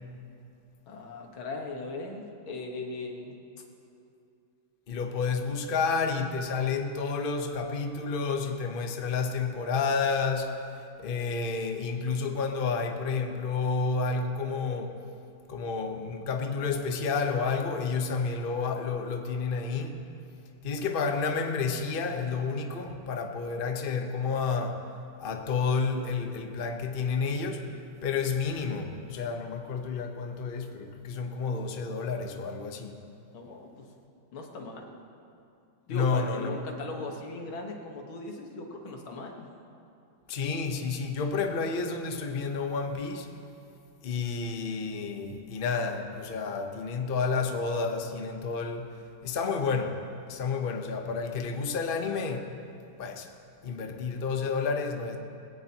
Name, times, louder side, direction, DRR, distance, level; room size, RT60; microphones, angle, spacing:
voice 1, 0.9-3.3 33.3-33.9 34.3-34.9 35.9-39.5, left 2 dB, 85° left, 1 dB, 2.2 m, -38 dB
voice 2, 4.9-10.6 11.0-15.0 15.5-20.0 20.6-24.8 25.2-27.7 28.0-32.9 35.9-36.6 40.3-43.3 44.0-48.9 49.2-50.0 50.3-52.6 53.0-53.3 53.6-55.2, left 4 dB, 40° left, 4 dB, 0.8 m, -30 dB
20.5 x 17.0 x 2.9 m, 2.6 s
omnidirectional pair, 2.2 m